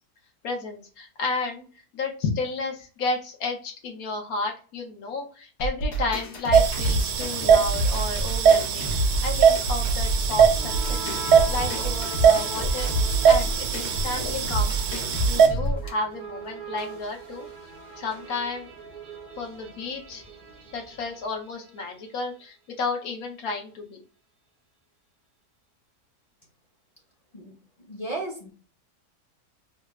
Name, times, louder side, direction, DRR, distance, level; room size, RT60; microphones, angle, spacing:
voice 1, 0.4-1.6 1.9-11.0 11.5-12.9 13.3-17.5 18.0-18.7 19.4-20.2 20.7-24.0, left 3 dB, 70° left, 2 dB, 1.2 m, -32 dB
sound 1, 5.6-15.9, right 1 dB, 85° left, 1.4 m, -28 dB
sound 2, 6.5-15.5, right 7 dB, 85° right, 1.1 m, -22 dB
sound 3, 10.1-22.0, right 1 dB, 50° right, 0.6 m, -41 dB
voice 2, 27.3-28.5, right 2 dB, 35° left, -1 dB, 0.6 m, -35 dB
3.3 x 2.3 x 2.9 m, 0.37 s
omnidirectional pair, 1.6 m